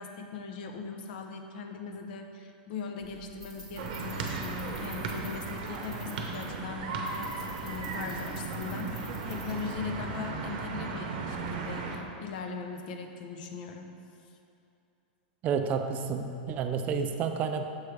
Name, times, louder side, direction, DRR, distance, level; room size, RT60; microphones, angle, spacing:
voice 1, 0.0-13.9, left 4 dB, 65° left, 5 dB, 0.6 m, -40 dB
sound 1, 3.0-10.2, equal, 5° left, 1.5 m, -50 dB
sound 2, 3.8-12.0, right 4 dB, 65° right, 0.7 m, -36 dB
voice 2, 15.4-17.7, right 6 dB, 30° right, 7 dB, 0.4 m, -30 dB
7.1 x 3.2 x 4.7 m, 2.6 s
supercardioid pair, 140°, 5 cm